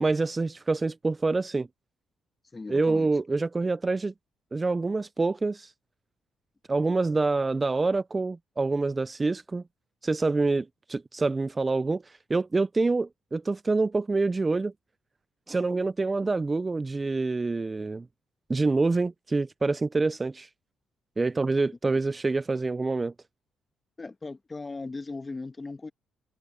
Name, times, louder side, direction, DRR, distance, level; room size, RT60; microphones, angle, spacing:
voice 1, 0.0-1.7 2.7-4.1 4.5-5.7 6.7-9.6 10.0-14.7 15.5-18.1 18.5-20.5 21.2-23.1, right 3 dB, 25° right, 0.3 m, -26 dB
voice 2, 2.5-3.1 24.0-25.9, left 3 dB, 25° left, 1.5 m, -38 dB
cardioid pair, 90°, 0 cm